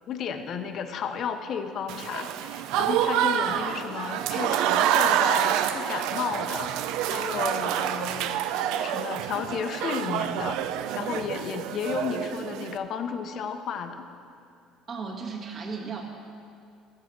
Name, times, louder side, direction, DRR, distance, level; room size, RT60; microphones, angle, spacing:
voice 1, 0.1-8.3 8.8-10.6 10.9-14.1, left 6 dB, 45° left, 8 dB, 0.7 m, -33 dB
Applause / Crowd, 1.9-12.8, right 10 dB, 75° right, 0.5 m, -27 dB
voice 2, 3.4-3.8 14.9-16.0, right 5 dB, 35° right, -1 dB, 1.6 m, -36 dB
14.0 x 7.3 x 6.1 m, 2.5 s
cardioid pair, 145°, 0 cm